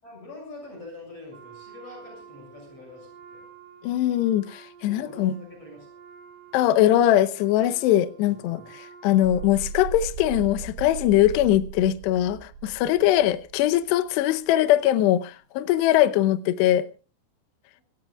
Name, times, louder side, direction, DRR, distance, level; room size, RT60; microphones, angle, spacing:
voice 1, 0.0-3.4 4.9-5.9 8.5-8.6 13.1-13.2, left 2 dB, 30° left, 7.7 m, -44 dB
Wind instrument woodwind instrument, 1.3-10.1, right 7 dB, 70° right, 1.5 m, -50 dB
voice 2, 3.8-5.3 6.5-16.9, left 13 dB, 80° left, 2.5 m, -21 dB
sound 1, 9.2-13.8, right 6 dB, 85° right, 4.0 m, -37 dB
26.0 x 16.5 x 2.3 m
omnidirectional pair, 5.9 m